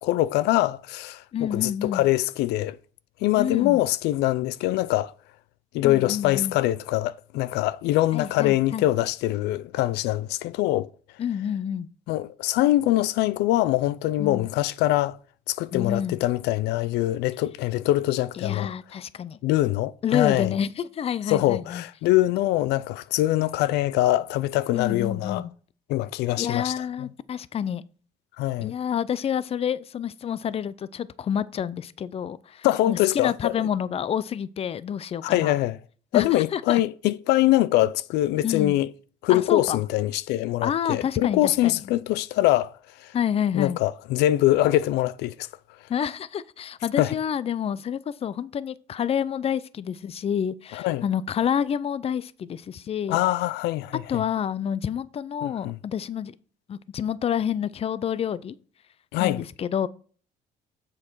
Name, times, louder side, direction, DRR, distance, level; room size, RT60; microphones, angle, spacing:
voice 1, 0.0-2.8 3.2-5.1 5.7-10.9 12.1-15.2 15.5-18.7 19.4-20.5 21.3-25.4 25.9-26.7 28.4-28.7 32.6-33.7 35.2-35.8 36.1-38.9 39.2-43.1 43.5-45.5 47.0-47.1 50.7-51.0 53.1-54.3 55.4-55.8 59.1-59.4, left 15 dB, 85° left, 0.4 m, -23 dB
voice 2, 1.3-2.0 3.4-3.8 5.8-6.5 8.1-8.9 11.2-11.9 14.2-14.5 15.7-16.2 18.4-19.4 20.0-21.8 24.7-25.5 26.4-27.8 28.6-35.6 36.1-36.8 38.4-38.8 39.3-39.8 40.6-41.8 43.1-43.8 45.9-53.2 54.1-56.3 56.7-58.6 59.2-59.9, left 8 dB, 35° left, 0.5 m, -28 dB
7.6 x 6.4 x 4.6 m
cardioid pair, 110°, 17 cm